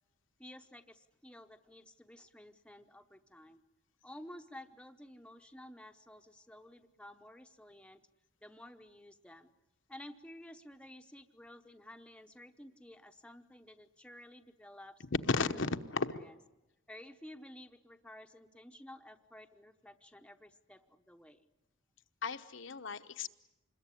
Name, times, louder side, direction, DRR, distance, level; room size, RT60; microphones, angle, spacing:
voice 1, 0.4-3.6 4.0-8.0 8.4-9.5 9.9-15.1 15.4-15.6 16.0-16.4 16.9-21.4, left 1 dB, 5° left, 6 dB, 0.9 m, -53 dB
voice 2, 15.2-16.2 22.2-23.3, left 4 dB, 60° left, 8 dB, 1.1 m, -34 dB
26.5 x 21.5 x 9.9 m, 0.99 s
head